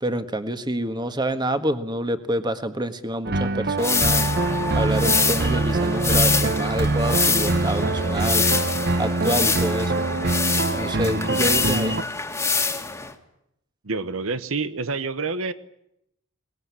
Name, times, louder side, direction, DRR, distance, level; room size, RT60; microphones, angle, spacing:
voice 1, 0.0-4.3 4.7-8.4 9.0-9.9 10.8-12.0, right 1 dB, 20° right, 10 dB, 1.6 m, -27 dB
sound 1, 3.2-12.0, right 2 dB, 50° right, 0.9 m, -24 dB
sound 2, 3.8-13.1, left 4 dB, 10° left, 2.0 m, -25 dB
voice 2, 13.8-15.5, right 4 dB, 75° right, 13 dB, 1.1 m, -27 dB
23.0 x 20.0 x 9.8 m, 0.79 s
head